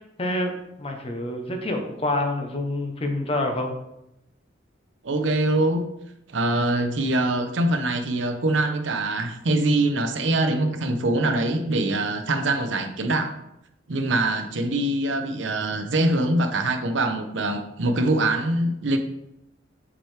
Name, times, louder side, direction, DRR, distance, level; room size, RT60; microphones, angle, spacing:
voice 1, 0.2-0.5 0.8-3.7, left 1 dB, 30° left, 3 dB, 0.8 m, -27 dB
voice 2, 5.0-5.8 6.3-13.3 13.9-19.0, right 2 dB, 75° right, 7 dB, 0.7 m, -23 dB
7.4 x 4.7 x 3.3 m, 0.85 s
head